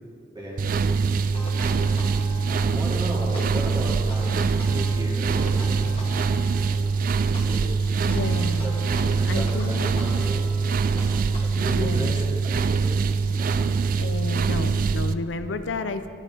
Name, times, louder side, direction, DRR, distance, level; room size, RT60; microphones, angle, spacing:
voice 1, 0.3-1.7 2.4-6.2 6.8-8.3 8.6-10.4 11.0-12.9 13.4-13.7, equal, 25° right, -5 dB, 2.0 m, -36 dB
sound 1, 0.6-15.1, right 5 dB, 50° right, 0.3 m, -23 dB
sound 2, 1.3-2.9 3.3-5.0 5.3-6.9 7.3-11.9, left 1 dB, 30° left, 1.4 m, -41 dB
voice 2, 8.1-8.8 9.3-9.9 11.6-12.2 14.0-16.1, left 3 dB, 75° left, 10 dB, 0.5 m, -31 dB
13.0 x 11.0 x 2.8 m, 2.4 s
head